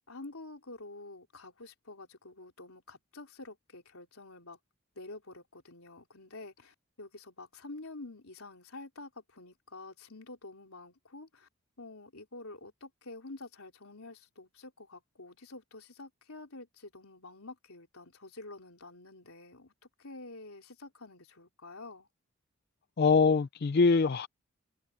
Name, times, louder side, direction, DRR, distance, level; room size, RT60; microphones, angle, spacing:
voice 1, 0.1-4.6 5.0-11.5 11.8-19.7 20.0-22.1, left 2 dB, 80° left, 3.7 m, -48 dB
voice 2, 23.0-24.3, left 4 dB, 50° left, 0.4 m, -23 dB
head